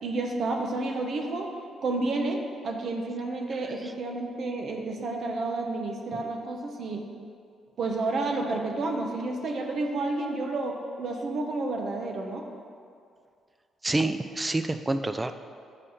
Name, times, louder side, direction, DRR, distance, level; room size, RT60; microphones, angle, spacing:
voice 1, 0.0-1.5 1.8-7.0 7.8-12.5, right 2 dB, 60° right, 2 dB, 0.7 m, -30 dB
voice 2, 13.8-15.3, right 2 dB, 15° right, 9 dB, 0.3 m, -28 dB
5.0 x 4.3 x 5.4 m, 2.3 s
cardioid pair, 90°, 0 cm